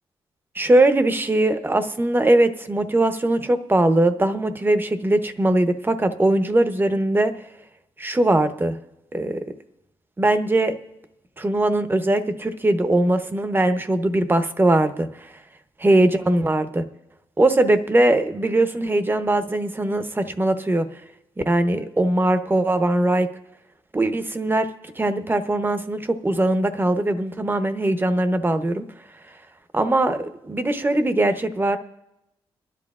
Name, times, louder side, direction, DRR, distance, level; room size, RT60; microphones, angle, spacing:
voice 1, 0.5-7.3 8.0-8.8 9.1-9.4 10.2-10.7 11.4-15.3 15.8-16.8 17.4-20.9 21.5-23.3 23.9-24.7 25.0-28.8 29.7-31.8, right 1 dB, 20° right, 9 dB, 0.9 m, -20 dB
29.5 x 11.0 x 2.4 m, 0.91 s
cardioid pair, 80°, 10 cm